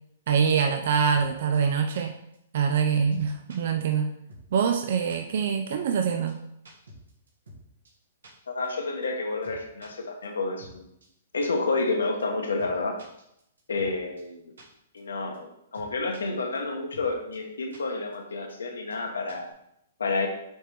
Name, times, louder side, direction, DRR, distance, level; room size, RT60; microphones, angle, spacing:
voice 1, 0.3-2.1 2.5-4.1 4.5-6.4, right 6 dB, 60° right, 6 dB, 0.5 m, -24 dB
sound 1, 1.1-1.3 1.5-1.6 1.9-2.0 2.3-2.4 2.7-2.8 3.1-3.6 3.9-4.0 4.3-4.4 4.7-4.8 5.1-5.2 5.5-5.6 5.9-6.0 6.3-6.4 6.7-7.6 7.9-8.0 8.2-8.3 8.6-8.7 9.0-9.1 9.4-9.9 10.2-10.3 10.6-10.7 11.0-11.1 11.4-11.5 11.8-11.9 12.2-12.3 12.6-12.7 13.0-13.9 14.2-14.3 14.6-14.7 15.0-15.1 15.3-15.4 15.7-16.2 16.5-16.6 16.9-17.1 17.3-17.4 17.7-17.8 18.1-18.2 18.5-18.6 18.9-19.0 19.3-19.5, equal, 80° right, 1.9 m, -49 dB
voice 2, 8.5-10.8 11.3-13.0 13.7-14.6 14.9-19.5 20.0-20.3, left 3 dB, 80° left, 3 dB, 1.1 m, -29 dB
6.4 x 4.4 x 3.3 m, 0.78 s
hypercardioid pair, 120°, 0 cm